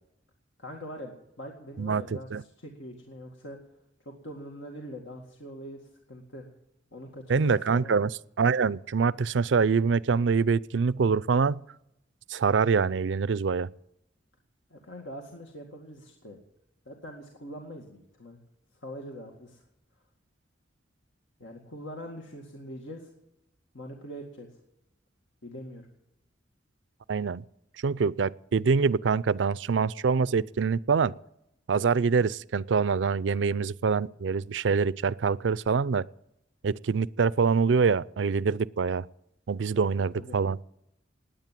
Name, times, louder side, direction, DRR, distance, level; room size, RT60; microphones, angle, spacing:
voice 1, 0.6-3.6 4.1-6.5 6.9-8.1 14.7-16.4 16.9-18.4 18.8-19.6 21.4-23.1 23.7-24.5 25.4-25.8 39.7-39.9 40.1-40.4, equal, 80° left, 2.1 m, -43 dB
voice 2, 1.8-2.4 7.3-8.1 8.4-11.6 12.3-13.7 27.1-27.4 27.8-31.1 31.7-36.1 36.6-39.1 39.5-40.6, right 5 dB, 70° right, 0.5 m, -25 dB
20.0 x 8.9 x 7.5 m
head